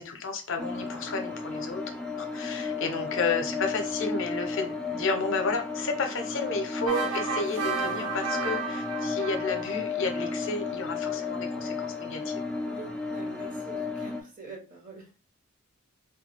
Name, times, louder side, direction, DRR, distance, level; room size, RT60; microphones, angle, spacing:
voice 1, 0.0-1.8 2.2-12.3, left 3 dB, 60° left, 6 dB, 0.6 m, -32 dB
sound 1, 0.6-14.2, left 4 dB, 5° left, 0.4 m, -33 dB
sound 2, 6.9-10.3, right 5 dB, 90° right, 0.6 m, -33 dB
voice 2, 12.6-15.2, right 4 dB, 40° right, 0 dB, 0.9 m, -46 dB
3.1 x 2.3 x 3.2 m, 0.34 s
head